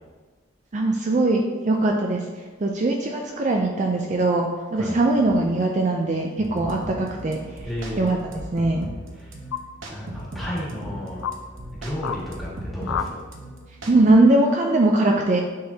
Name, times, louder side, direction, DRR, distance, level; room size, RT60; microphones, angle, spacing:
voice 1, 0.7-2.2 2.6-7.4 8.0-8.9 13.9-15.4, right 2 dB, 35° right, 1 dB, 0.4 m, -21 dB
sound 1, 5.4-5.5 6.9-7.4 9.5-9.6 10.5-10.6 11.2-11.4 12.0-12.2 12.8-13.1, left 8 dB, 90° left, 0.3 m, -30 dB
sound 2, 6.4-14.1, right 1 dB, 85° right, 0.9 m, -37 dB
voice 2, 7.6-8.1 9.1-9.3 9.9-11.2 11.7-13.2, equal, ahead, -7 dB, 1.6 m, -32 dB
9.4 x 3.9 x 2.8 m, 1.4 s
head